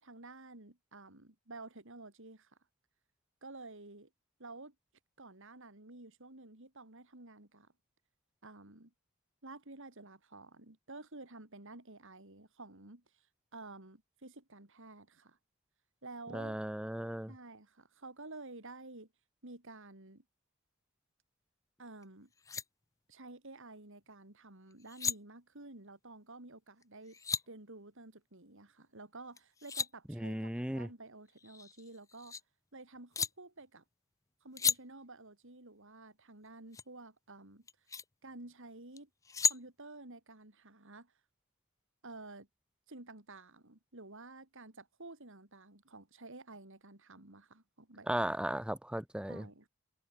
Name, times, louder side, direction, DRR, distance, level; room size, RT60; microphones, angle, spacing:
voice 1, 0.0-2.5 3.4-4.1 4.4-4.7 5.2-7.7 8.4-8.9 9.4-13.0 13.5-15.4 16.0-16.6 17.3-19.1 19.4-20.2 21.8-22.3 23.1-27.2 27.5-32.4 32.7-33.8 34.4-37.7 38.2-39.1 39.4-41.1 42.0-42.5 42.9-48.6 49.3-49.7, right 2 dB, 60° right, 3.3 m, -51 dB
voice 2, 16.3-17.3 30.1-30.9 48.1-49.4, right 1 dB, 5° right, 1.0 m, -36 dB
sound 1, 22.0-22.1 22.3-22.6 24.7-25.2 26.8-27.4 29.4-29.9 31.3-32.4 33.1-33.3 34.5-34.8 36.7-36.8 37.7-38.0 39.0-39.6, left 6 dB, 15° left, 0.3 m, -34 dB
head